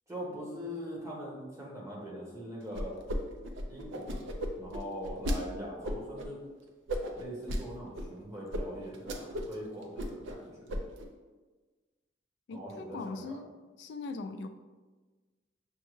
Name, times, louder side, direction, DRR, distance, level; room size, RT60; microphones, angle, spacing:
voice 1, 0.1-2.9 3.7-4.3 4.6-6.4 7.2-10.8 12.5-13.4, equal, 15° right, -4 dB, 0.9 m, -42 dB
sound 1, 2.7-3.2 3.4-5.4 5.8-6.3 6.9-7.6 8.0-8.1 8.5-8.6 8.9-9.6 9.8-10.4 10.7-11.1, equal, 80° right, 0.5 m, -34 dB
voice 2, 12.5-13.5 13.8-14.5, left 3 dB, 65° left, 8 dB, 0.3 m, -40 dB
6.3 x 2.2 x 3.1 m, 1.3 s
head